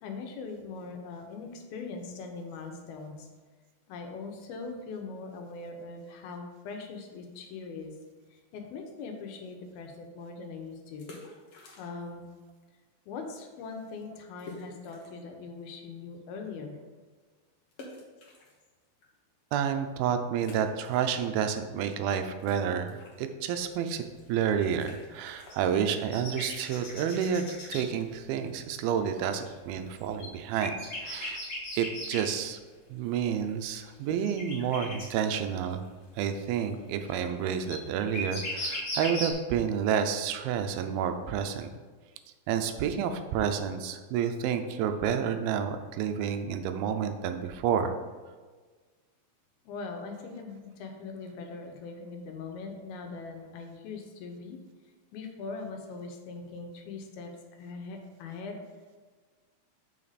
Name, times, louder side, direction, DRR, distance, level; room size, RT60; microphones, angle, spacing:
voice 1, 0.0-3.3 3.9-7.9 8.3-11.1 11.8-12.3 13.1-16.8 49.6-54.6 55.1-58.6, left 4 dB, 85° left, 3 dB, 2.8 m, -41 dB
sound 1, 11.0-12.2 12.5-12.6 13.2-13.3 13.6-13.7 14.4-15.3 15.8-15.9 17.7-19.0 19.5-19.6 20.4-21.6 21.8-27.3, left 2 dB, 55° left, 1.5 m, -50 dB
voice 2, 19.5-24.0 24.3-30.7 31.0-31.4 31.8-32.6 32.9-35.9 36.2-41.7 42.5-48.0, right 8 dB, 85° right, 8 dB, 2.5 m, -30 dB
sound 2, 23.6-23.7 24.2-24.3 25.4-27.8 29.5-32.4 33.6-33.7 34.2-35.1 37.1-39.3, left 1 dB, 35° left, 2.8 m, -37 dB
7.5 x 5.9 x 4.1 m, 1.4 s
omnidirectional pair, 4.2 m